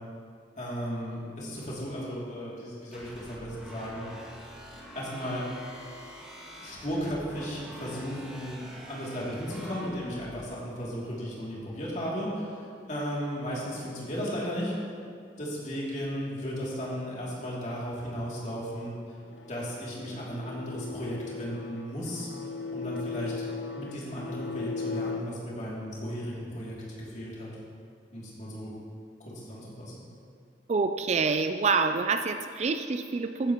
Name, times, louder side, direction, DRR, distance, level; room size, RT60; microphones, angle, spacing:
voice 1, 0.6-4.1 4.9-5.4 6.6-8.6 8.9-14.7 15.4-18.9 19.5-22.3 22.7-23.5 23.7-26.8 27.1-27.5 28.1-28.7 29.3-29.9, equal, 40° left, -6 dB, 2.8 m, -35 dB
sound 1, 2.9-10.4, equal, 5° right, 1.8 m, -46 dB
sound 2, 19.2-25.2, left 4 dB, 75° left, 0.8 m, -37 dB
voice 2, 30.7-33.5, right 4 dB, 35° right, 8 dB, 0.4 m, -27 dB
15.0 x 10.5 x 3.0 m, 2.3 s
head